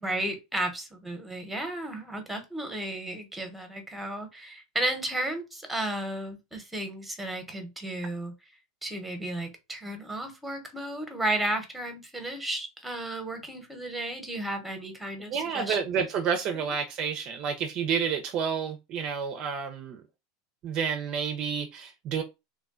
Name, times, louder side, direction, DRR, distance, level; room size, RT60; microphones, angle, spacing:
voice 1, 0.0-8.3 8.8-15.8 16.6-16.7, right 1 dB, 5° right, 0.8 m, -33 dB
voice 2, 15.3-20.0 20.6-22.2, right 6 dB, 40° right, 0.4 m, -30 dB
3.3 x 2.2 x 2.3 m
supercardioid pair, 120°, 2 cm